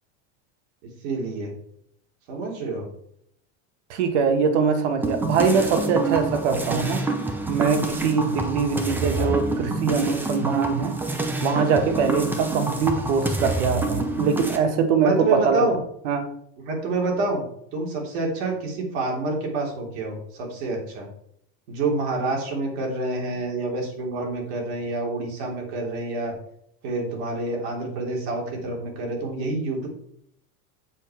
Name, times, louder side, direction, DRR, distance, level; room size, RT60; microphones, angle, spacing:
voice 1, 1.0-1.5 2.3-2.9 9.0-9.3 15.0-15.8 16.7-17.4 17.7-21.1 21.7-26.3 26.8-29.9, right 3 dB, 60° right, -1 dB, 3.4 m, -27 dB
voice 2, 3.9-7.0 7.5-10.9 11.4-15.7 16.0-16.2, right 5 dB, 80° right, 7 dB, 1.6 m, -22 dB
sound 1, 5.0-14.6, right 2 dB, 5° right, 0.5 m, -27 dB
7.5 x 7.1 x 4.5 m, 0.71 s
supercardioid pair, 170°, 35 cm